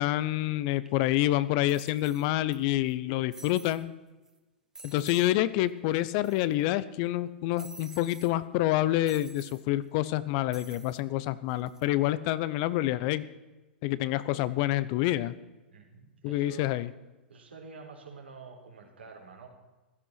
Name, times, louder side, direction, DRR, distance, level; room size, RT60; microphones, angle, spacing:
voice 1, 0.0-3.9 4.8-13.2 13.8-15.4 16.2-16.9, left 15 dB, 45° left, 16 dB, 0.8 m, -27 dB
sound 1, 0.9-1.0 1.7-2.6 2.8-2.9 3.3-3.8 4.3-4.4 4.7-5.3 5.6-5.7 5.9-6.7 7.6-8.3 9.1-9.6 10.5-11.0 11.5-11.8, right 3 dB, 10° right, 1.8 m, -49 dB
voice 2, 15.7-16.7 17.3-19.5, right 4 dB, 80° right, 1 dB, 4.3 m, -48 dB
16.0 x 13.5 x 5.8 m, 1.1 s
figure-of-eight pair, 100°, 6 cm